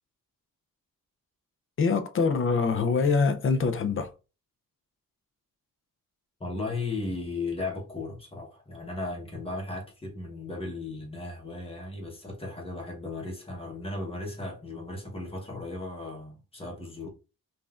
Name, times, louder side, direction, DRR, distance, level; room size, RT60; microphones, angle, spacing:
voice 1, 1.8-4.1, left 5 dB, 40° left, 0.4 m, -24 dB
voice 2, 6.4-17.1, left 3 dB, 15° left, 1.0 m, -36 dB
5.4 x 2.4 x 2.3 m
wide cardioid pair, 155°, 35 cm